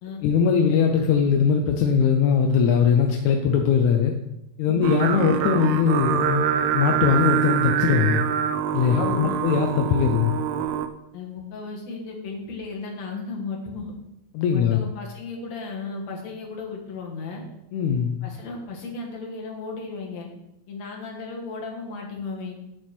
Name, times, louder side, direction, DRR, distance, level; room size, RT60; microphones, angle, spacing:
voice 1, 0.2-4.1 4.6-6.5 6.7-8.2 8.7-10.3 14.3-14.8 17.7-18.2, left 7 dB, 80° left, 2 dB, 2.2 m, -20 dB
Singing, 4.8-10.9, right 9 dB, 85° right, 2.0 m, -25 dB
voice 2, 8.9-9.4 11.1-13.9 14.5-17.4 18.2-20.3 20.7-22.6, left 4 dB, 65° left, 0 dB, 3.0 m, -35 dB
9.4 x 7.8 x 4.4 m, 0.86 s
omnidirectional pair, 3.3 m